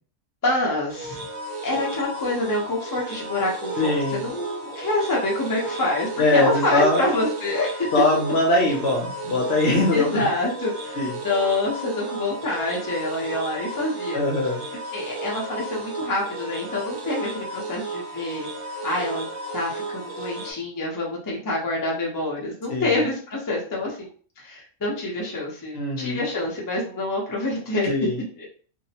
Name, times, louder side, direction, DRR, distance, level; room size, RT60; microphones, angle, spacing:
voice 1, 0.4-1.2 1.6-7.9 9.9-14.2 14.9-18.5 18.8-19.3 19.5-24.1 24.4-27.9 28.4-28.5, left 2 dB, 25° left, -3 dB, 0.4 m, -26 dB
sound 1, 0.9-20.5, right 2 dB, 70° right, 1.1 m, -34 dB
voice 2, 3.8-4.2 6.2-7.0 7.9-10.3 11.0-11.1 14.1-14.6 22.7-23.0 25.7-26.2 27.9-28.2, left 2 dB, 60° left, -2 dB, 0.7 m, -22 dB
2.6 x 2.0 x 2.7 m, 0.43 s
omnidirectional pair, 1.5 m